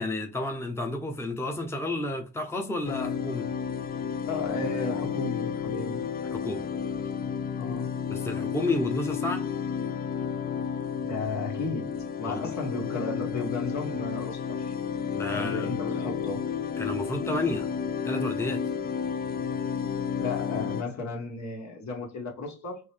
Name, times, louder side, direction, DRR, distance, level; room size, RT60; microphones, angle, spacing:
voice 1, 0.0-3.5 6.3-6.7 8.1-9.5 12.2-12.5 15.1-15.7 16.8-17.7 18.0-18.7, left 2 dB, 10° left, 0.9 m, -31 dB
sound 1, 2.8-20.8, left 7 dB, 30° left, 0.5 m, -31 dB
voice 2, 4.2-6.0 7.6-8.0 11.0-14.7 15.3-16.5 20.2-22.8, left 3 dB, 65° left, 1.8 m, -34 dB
4.6 x 3.2 x 3.4 m
cardioid pair, 90°, 30 cm